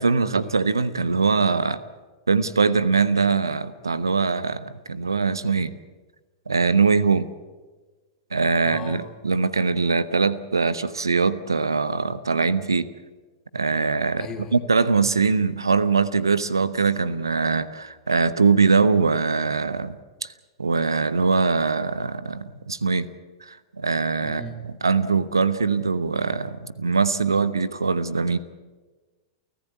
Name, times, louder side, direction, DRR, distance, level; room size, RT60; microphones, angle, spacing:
voice 1, 0.0-1.8 2.3-5.7 6.5-7.3 8.3-12.9 13.5-14.3 14.5-20.3 20.6-23.1 23.4-24.4 24.8-28.4, right 4 dB, 80° right, 16 dB, 0.9 m, -22 dB
voice 2, 8.6-9.0 14.2-14.6 24.2-24.6, left 2 dB, 25° left, 5 dB, 3.1 m, -37 dB
29.5 x 14.5 x 8.5 m, 1.3 s
figure-of-eight pair, 95°, 2 cm